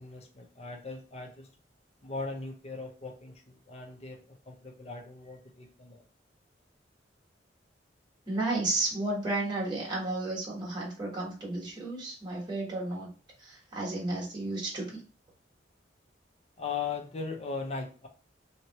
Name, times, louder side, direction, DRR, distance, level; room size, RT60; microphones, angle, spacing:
voice 1, 0.0-1.5 2.0-6.0 16.6-18.1, left 4 dB, 35° left, 3 dB, 0.7 m, -39 dB
voice 2, 8.2-13.1 13.4-15.0, right 2 dB, 25° right, -5 dB, 1.3 m, -32 dB
3.1 x 2.8 x 2.8 m, 0.37 s
head